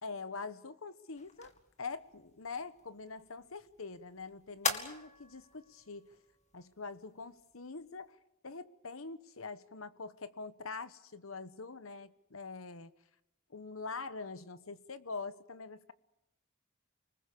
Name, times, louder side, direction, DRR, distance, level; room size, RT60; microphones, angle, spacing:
voice 1, 0.0-1.5 1.8-6.1 6.5-8.2 8.4-12.9 13.5-15.9, left 4 dB, 70° left, 13 dB, 1.2 m, -44 dB
sound 1, 1.1-8.1, left 5 dB, 35° left, 2.1 m, -43 dB
29.5 x 20.5 x 7.0 m, 0.87 s
head